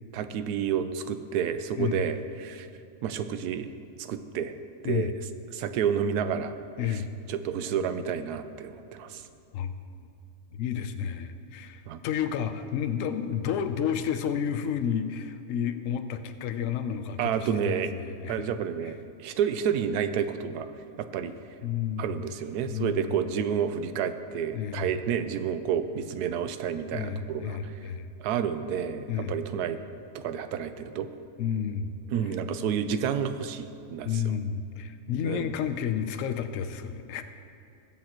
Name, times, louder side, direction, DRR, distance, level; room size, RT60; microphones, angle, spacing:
voice 1, 0.1-2.7 3.0-3.7 4.0-4.6 4.8-5.1 5.5-6.6 6.8-7.0 7.3-9.2 11.9-12.0 17.2-17.9 18.3-20.7 21.0-21.3 22.0-27.8 28.2-29.8 30.1-31.1 32.1-34.2 35.2-35.5, right 8 dB, 90° right, 10 dB, 1.1 m, -30 dB
voice 2, 6.8-7.1 9.5-9.7 10.5-18.5 21.6-22.2 22.7-23.0 24.5-24.9 26.9-28.1 29.1-29.3 31.4-31.9 34.0-37.2, left 8 dB, 65° left, 9 dB, 0.9 m, -31 dB
19.5 x 7.4 x 3.0 m, 2.6 s
omnidirectional pair, 1.6 m